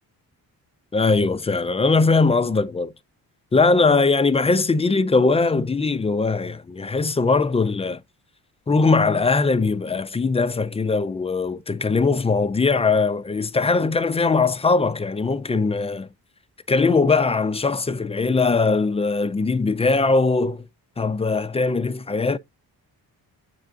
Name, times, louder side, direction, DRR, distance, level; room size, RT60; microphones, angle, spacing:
voice 1, 0.9-2.9 3.5-8.0 8.7-16.1 16.7-20.7 21.0-22.4, left 3 dB, 20° left, 0.3 m, -20 dB
7.7 x 3.4 x 3.7 m
cardioid pair, 130°, 36 cm